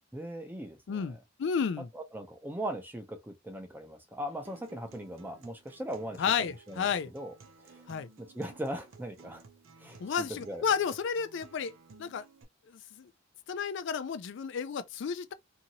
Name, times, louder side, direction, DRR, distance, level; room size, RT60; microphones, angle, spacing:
voice 1, 0.1-1.2 1.9-6.2 6.7-7.3 7.6-7.8 8.2-9.4 9.8-10.6, right 1 dB, 10° right, 0.5 m, -39 dB
voice 2, 0.9-1.9 6.2-7.1 7.9-8.1 10.0-11.7 12.0-12.2 12.7-13.1 13.5-15.3, left 6 dB, 65° left, 0.4 m, -32 dB
Acoustic guitar, 4.4-12.4, right 4 dB, 85° right, 0.6 m, -56 dB
2.8 x 2.6 x 2.7 m
head